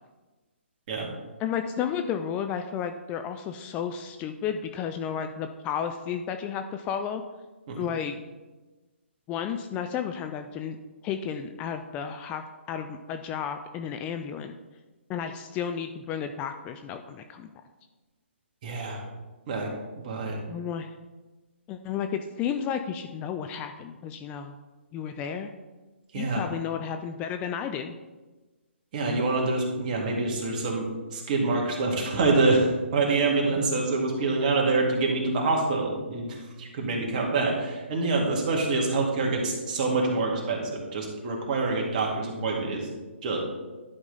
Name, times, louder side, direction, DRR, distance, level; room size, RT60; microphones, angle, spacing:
voice 1, 1.4-7.2 7.8-8.2 9.3-10.8 11.0-14.5 15.1-17.5 20.5-20.9 21.7-24.6 24.9-25.5 26.2-27.9, left 8 dB, 20° left, 7 dB, 0.3 m, -32 dB
voice 2, 18.6-19.0 19.5-20.4 26.1-26.4 28.9-42.9 43.2-43.4, right 3 dB, 40° right, -1 dB, 2.2 m, -26 dB
11.0 x 5.2 x 4.0 m, 1.2 s
hypercardioid pair, 145°, 7 cm